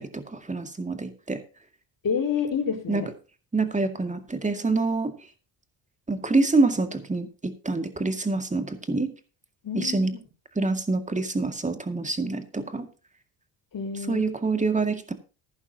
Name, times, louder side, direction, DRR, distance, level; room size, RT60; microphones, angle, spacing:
voice 1, 0.0-1.4 2.9-3.0 3.5-5.1 6.1-9.1 9.7-10.1 10.6-12.9 14.1-15.1, right 3 dB, 15° right, 7 dB, 2.1 m, -26 dB
voice 2, 2.0-3.1 9.6-10.2 13.7-14.3, left 6 dB, 45° left, -2 dB, 4.3 m, -28 dB
14.5 x 11.0 x 2.9 m, 0.34 s
cardioid pair, 85°, 45 cm